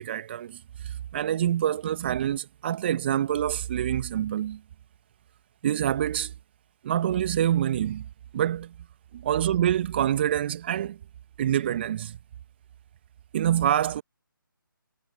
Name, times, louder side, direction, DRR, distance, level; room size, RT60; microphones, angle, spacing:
voice 1, 0.0-4.6 5.6-6.3 6.8-8.1 8.3-8.7 9.1-11.0 11.4-12.2 13.3-14.0, right 10 dB, 30° right, 1.7 m, -26 dB
figure-of-eight pair, 150°, 12 cm